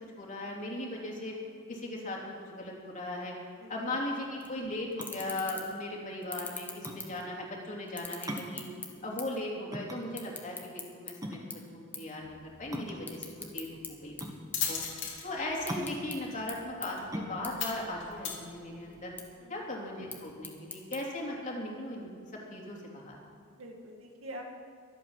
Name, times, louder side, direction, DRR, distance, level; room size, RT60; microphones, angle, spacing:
voice 1, 0.1-1.3 1.7-3.3 3.7-8.6 9.0-10.6 10.9-14.4 14.7-14.8 15.2-19.1 19.5-22.1 22.5-23.2, left 1 dB, 40° left, -2 dB, 3.1 m, -38 dB
sound 1, 4.4-4.5 4.9-5.8 6.2-7.5 7.9-9.4 9.7-11.1 11.5-11.7 11.9-12.1 12.5-13.9 14.2-15.2 15.5-16.2 16.5-16.6 16.8-16.9 17.4-17.5 17.9-18.5 18.9-19.2 19.9-21.0, left 3 dB, 10° left, 1.5 m, -42 dB
sound 2, 5.0-19.2, equal, 20° right, 1.5 m, -43 dB
sound 3, 12.2-19.1, left 7 dB, 65° left, 2.8 m, -40 dB
voice 2, 19.4-19.7 23.5-24.4, right 1 dB, 75° right, 1 dB, 2.2 m, -45 dB
23.5 x 8.5 x 5.7 m, 2.2 s
head